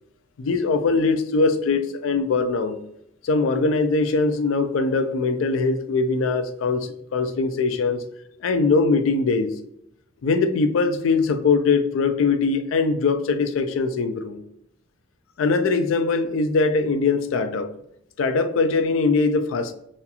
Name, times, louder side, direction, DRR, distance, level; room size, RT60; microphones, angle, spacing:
voice 1, 0.4-2.8 3.2-8.0 8.4-9.6 10.2-14.4 15.4-17.7 18.2-19.7, left 4 dB, 80° left, 0.3 m, -21 dB
2.8 x 2.3 x 2.3 m
head